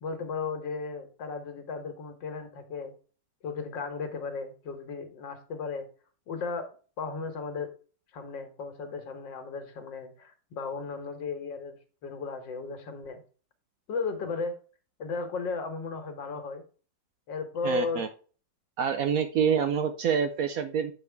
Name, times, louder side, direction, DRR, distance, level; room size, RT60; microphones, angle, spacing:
voice 1, 0.0-2.9 3.4-5.9 6.3-6.7 7.0-7.7 8.1-11.8 12.0-13.2 13.9-14.6 15.0-16.6 17.3-18.1 19.4-19.7, left 4 dB, 85° left, 7 dB, 1.9 m, -35 dB
voice 2, 17.6-18.1 18.8-20.9, right 7 dB, 65° right, 8 dB, 0.9 m, -27 dB
7.8 x 4.7 x 3.4 m, 0.38 s
omnidirectional pair, 1.9 m